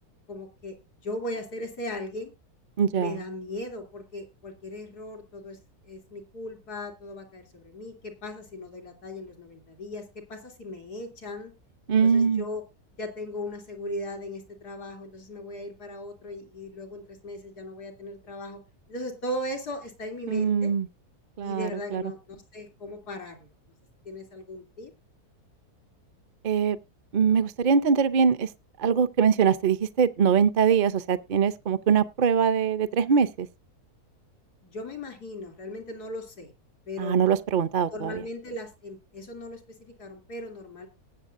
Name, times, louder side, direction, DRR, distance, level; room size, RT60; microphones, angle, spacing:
voice 1, 0.3-0.8 1.0-2.3 2.9-5.6 5.9-11.5 12.0-12.6 13.0-18.6 18.9-20.7 21.4-23.5 24.1-24.9 34.6-36.5 36.9-37.3 37.9-40.9, left 1 dB, 90° left, 3.6 m, -38 dB
voice 2, 2.8-3.2 11.9-12.4 20.3-20.9 21.4-22.0 26.4-26.8 27.1-28.5 28.8-33.5 37.0-38.2, right 6 dB, 50° right, 0.6 m, -23 dB
20.0 x 7.1 x 2.6 m
omnidirectional pair, 1.6 m